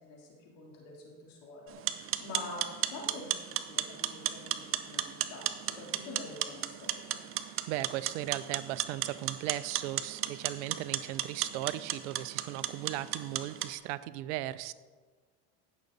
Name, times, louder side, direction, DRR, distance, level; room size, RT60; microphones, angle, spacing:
voice 1, 0.0-7.2, left 2 dB, 70° left, -2 dB, 3.5 m, -46 dB
sound 1, 1.7-13.7, right 11 dB, 40° right, 0.7 m, -35 dB
voice 2, 7.4-14.7, right 15 dB, 85° right, 16 dB, 0.6 m, -37 dB
15.5 x 6.4 x 4.0 m, 1.4 s
supercardioid pair, 125°, 35 cm